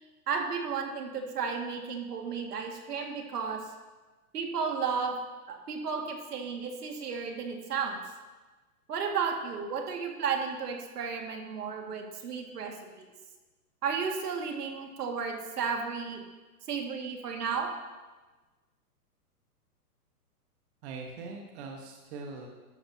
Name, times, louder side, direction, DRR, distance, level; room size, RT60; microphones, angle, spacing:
voice 1, 0.3-3.6 4.3-5.2 5.5-8.0 8.9-13.1 13.8-16.2 16.7-17.7, right 6 dB, 75° right, 2 dB, 2.2 m, -33 dB
voice 2, 20.8-22.5, right 4 dB, 45° right, 1 dB, 1.5 m, -41 dB
13.5 x 12.0 x 2.9 m, 1.2 s
hypercardioid pair, 150°, 47 cm